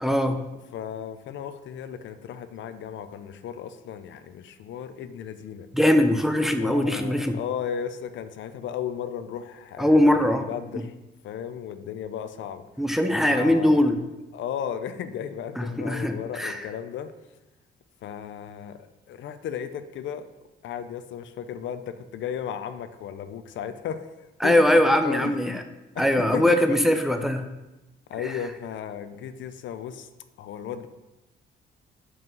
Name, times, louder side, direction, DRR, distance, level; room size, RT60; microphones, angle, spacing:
voice 1, 0.0-0.4 5.7-7.4 9.8-10.5 10.7-10.8 12.8-14.0 15.6-16.6 24.4-25.6 26.0-27.4, left 1 dB, ahead, 6 dB, 0.6 m, -21 dB
voice 2, 0.7-5.7 6.6-10.9 11.2-12.7 13.3-13.9 14.3-17.1 18.0-20.2 20.6-24.1 24.4-25.6 25.9-26.1 26.3-27.0 28.1-30.1 30.4-30.9, left 8 dB, 70° left, 11 dB, 0.5 m, -35 dB
5.5 x 5.5 x 5.3 m, 1.0 s
cardioid pair, 90°, 20 cm